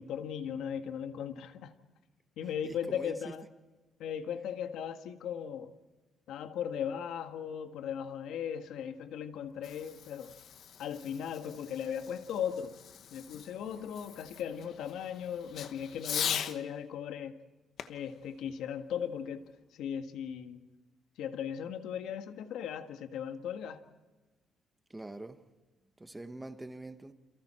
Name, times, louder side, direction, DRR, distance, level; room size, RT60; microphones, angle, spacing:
voice 1, 0.0-1.7 2.4-3.4 4.0-5.7 6.3-10.4 10.8-12.7 13.1-17.4 17.9-19.4 19.7-20.6 21.2-23.8, left 8 dB, 80° left, 1.6 m, -37 dB
voice 2, 2.6-3.4 24.9-25.5 26.0-27.1, right 2 dB, 10° right, 1.0 m, -44 dB
Fireworks, 9.3-16.6 17.8-19.4, left 8 dB, 55° left, 1.0 m, -41 dB
29.5 x 28.0 x 4.4 m
cardioid pair, 165°, 0 cm